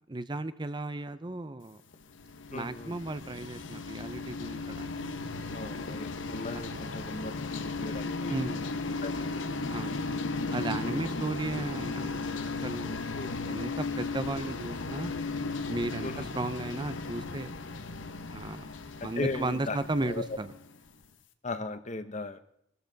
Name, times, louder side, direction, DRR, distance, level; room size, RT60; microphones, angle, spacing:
voice 1, 0.1-1.8 2.5-5.0 6.7-6.8 8.3-8.7 9.7-10.0 10.5-13.0 13.5-15.1 15.7-17.5 18.3-18.7 19.0-20.5, right 2 dB, 25° right, 12 dB, 0.6 m, -35 dB
sound 1, 1.9-20.9, left 3 dB, 85° left, 1.2 m, -36 dB
voice 2, 2.5-2.9 5.5-8.4 9.0-9.5 10.8-11.0 13.1-13.3 16.0-16.3 19.2-20.2 21.4-22.4, left 3 dB, 40° left, 11 dB, 1.0 m, -37 dB
22.0 x 13.5 x 4.0 m, 0.69 s
head